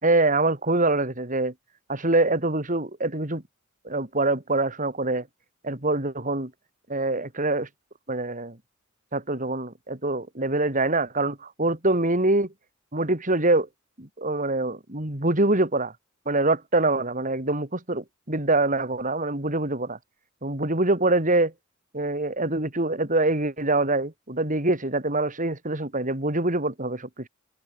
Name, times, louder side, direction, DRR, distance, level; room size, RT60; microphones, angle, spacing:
voice 1, 0.0-1.5 1.9-3.4 3.8-5.3 5.6-6.5 6.9-7.7 8.1-8.6 9.1-12.5 12.9-13.7 14.0-15.9 16.3-20.0 20.4-21.5 21.9-27.3, right 2 dB, 40° right, 3.6 m, -24 dB
open air
head